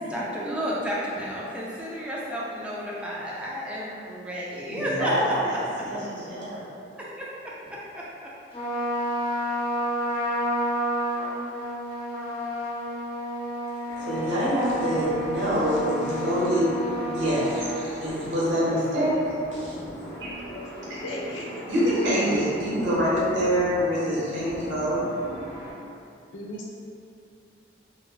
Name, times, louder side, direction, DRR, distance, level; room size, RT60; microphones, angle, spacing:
voice 1, 0.0-5.1 7.2-7.3 7.6-8.0, equal, 5° right, -7 dB, 0.3 m, -32 dB
voice 2, 4.7-6.6 14.0-16.7 17.0-19.2 19.5-19.7 20.2-20.3 21.7-25.0, equal, 70° right, -9 dB, 1.0 m, -25 dB
Trumpet, 8.5-17.9, equal, 45° left, 1.0 m, -30 dB
sound 1, 13.9-25.7, equal, 15° left, 0.7 m, -40 dB
voice 3, 20.4-21.7 26.3-26.7, left 1 dB, 80° left, -3 dB, 0.5 m, -37 dB
3.1 x 2.2 x 2.3 m, 2.5 s
head